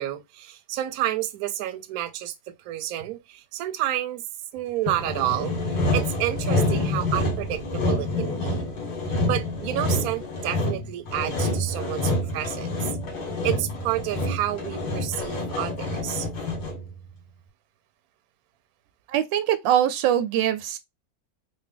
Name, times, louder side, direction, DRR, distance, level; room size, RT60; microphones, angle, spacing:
voice 1, 0.0-4.2 4.5-8.7 9.2-12.7 13.4-16.3, right 13 dB, 70° right, 0.9 m, -30 dB
Sawing, 4.9-16.9, left 1 dB, 85° left, 2.2 m, -27 dB
voice 2, 19.1-20.8, right 11 dB, 90° right, 1.3 m, -22 dB
4.1 x 2.1 x 3.5 m
omnidirectional pair, 2.0 m